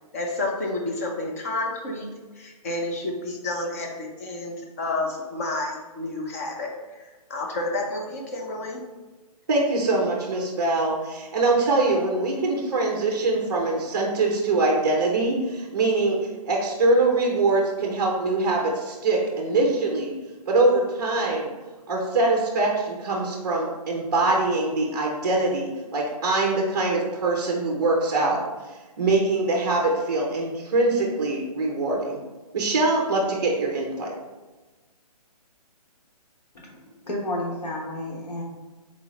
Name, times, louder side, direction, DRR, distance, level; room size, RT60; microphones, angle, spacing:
voice 1, 0.1-2.1 2.4-7.0 7.3-8.8, left 2 dB, 25° left, 0 dB, 0.5 m, -30 dB
voice 2, 9.5-16.2 16.4-20.1 20.5-21.5 21.9-28.4 28.6-32.2 32.5-34.1, right 2 dB, 35° right, 0 dB, 0.5 m, -23 dB
voice 3, 36.5-38.4, left 1 dB, 80° left, -2 dB, 1.3 m, -31 dB
3.9 x 3.1 x 3.7 m, 1.2 s
hypercardioid pair, 170°, 20 cm